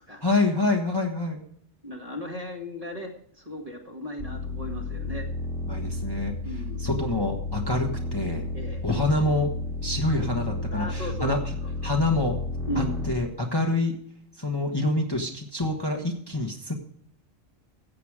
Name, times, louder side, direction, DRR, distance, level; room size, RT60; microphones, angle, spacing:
voice 1, 0.2-1.4 5.7-6.3 6.8-8.5 8.8-9.5 9.8-11.4 11.8-12.4 12.7-14.0 14.4-16.7, left 2 dB, 20° left, 1 dB, 1.5 m, -26 dB
voice 2, 1.8-5.3 6.4-6.9 8.5-8.8 10.7-11.3 11.6-12.0 12.7-13.0, equal, 30° right, 1 dB, 2.0 m, -36 dB
sound 1, 4.2-13.1, left 2 dB, 75° left, 3.3 m, -32 dB
15.5 x 8.3 x 4.9 m, 0.64 s
omnidirectional pair, 1.3 m